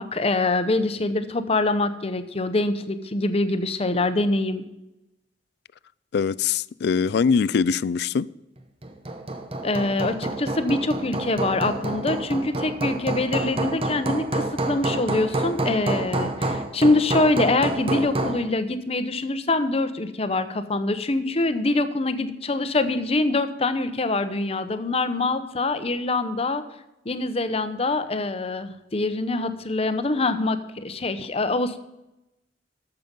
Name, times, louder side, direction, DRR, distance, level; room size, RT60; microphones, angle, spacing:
voice 1, 0.0-4.6 9.6-26.6 27.0-31.8, left 2 dB, 35° left, 0.8 m, -24 dB
voice 2, 6.1-8.3, left 6 dB, 65° left, 0.3 m, -22 dB
Hammer, 8.8-18.5, right 2 dB, 30° right, 1.0 m, -28 dB
13.0 x 6.8 x 5.3 m
head